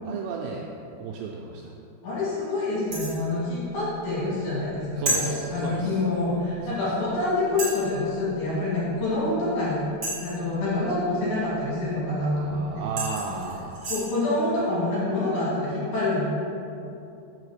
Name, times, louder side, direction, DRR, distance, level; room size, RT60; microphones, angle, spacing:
voice 1, 0.1-0.7 1.0-1.7 5.0-6.0 6.6-6.8 12.1-13.8, right 5 dB, 85° right, -1 dB, 2.4 m, -34 dB
voice 2, 2.0-9.8 10.2-12.9 13.3-13.4 13.9-16.2, left 2 dB, 60° left, -9 dB, 3.7 m, -27 dB
sound 1, 2.9-3.2 5.0-5.2 6.6-6.7 7.6-7.9 10.0-10.4 12.4-12.5 13.0-14.1, right 1 dB, 50° right, 1.1 m, -30 dB
6.5 x 5.1 x 6.5 m, 2.8 s
omnidirectional pair, 5.4 m